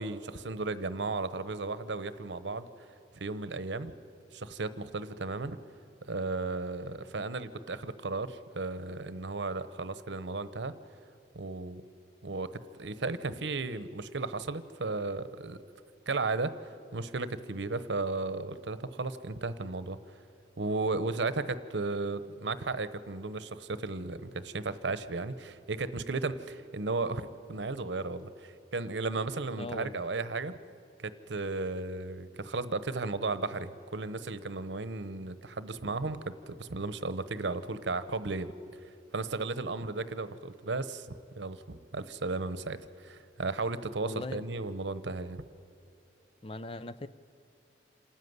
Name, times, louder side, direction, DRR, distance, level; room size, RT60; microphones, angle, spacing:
voice 1, 0.0-2.7 3.1-3.9 4.3-5.6 6.1-10.7 11.3-11.8 12.2-15.6 16.1-20.0 20.6-30.6 31.0-38.5 39.1-45.4, right 3 dB, 85° right, 14 dB, 0.9 m, -35 dB
voice 2, 29.6-30.0 44.1-44.4 46.4-47.1, left 2 dB, 30° left, 14 dB, 0.5 m, -39 dB
27.0 x 13.5 x 9.5 m, 2.6 s
head